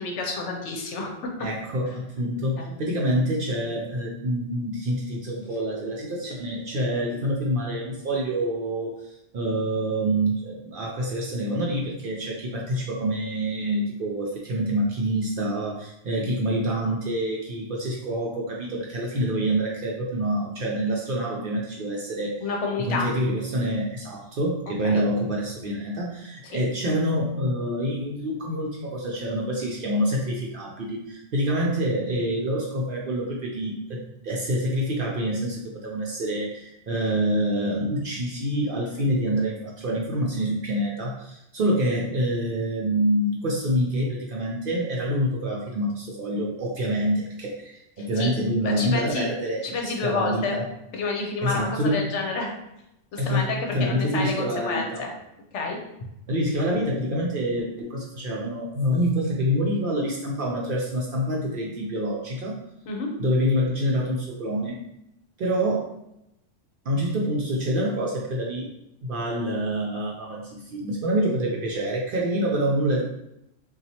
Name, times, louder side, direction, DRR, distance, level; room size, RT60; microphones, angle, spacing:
voice 1, 0.0-1.5 2.6-2.7 6.7-6.8 22.4-23.1 24.8-25.0 26.4-26.6 48.0-48.3 48.6-49.3 49.6-50.6 50.9-52.5 53.1-55.1 55.5-55.8 62.9-63.1 71.2-71.3, left 3 dB, 70° left, 1 dB, 1.0 m, -29 dB
voice 2, 1.4-9.0 9.3-22.5 22.9-50.6 51.4-52.2 53.2-55.0 56.3-62.6 63.2-64.8 65.4-65.9 66.9-68.7 69.0-73.0, equal, 60° right, -2 dB, 0.6 m, -26 dB
4.1 x 2.3 x 2.8 m, 0.85 s
omnidirectional pair, 1.3 m